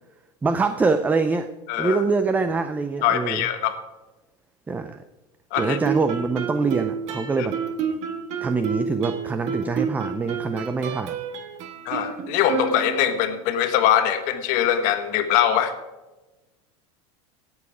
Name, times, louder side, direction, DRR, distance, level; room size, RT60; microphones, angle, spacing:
voice 1, 0.4-1.5 1.8-3.5 4.7-5.0 5.6-7.6 8.4-11.2, right 4 dB, 10° right, 10 dB, 0.4 m, -24 dB
voice 2, 1.7-2.0 3.0-3.7 5.5-5.8 11.8-15.7, left 10 dB, 55° left, 8 dB, 1.5 m, -22 dB
Guitar, 5.6-13.3, right 6 dB, 45° right, 1.4 m, -30 dB
17.5 x 7.2 x 4.9 m, 1.1 s
supercardioid pair, 135°, 17 cm